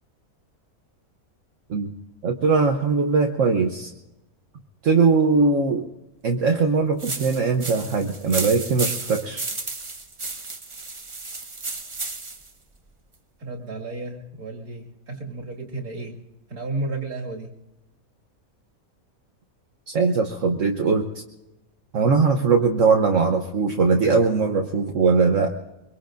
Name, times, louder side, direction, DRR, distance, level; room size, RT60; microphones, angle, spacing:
voice 1, 2.2-3.9 4.8-5.9 6.2-9.4 19.9-21.1 21.9-25.5, right 4 dB, 60° right, 3 dB, 1.2 m, -20 dB
sound 1, 7.0-12.5, right 3 dB, 25° right, 0.9 m, -33 dB
voice 2, 13.4-16.2 16.5-17.5, right 2 dB, 80° right, 0 dB, 2.7 m, -32 dB
23.5 x 23.0 x 2.6 m, 0.95 s
omnidirectional pair, 1.5 m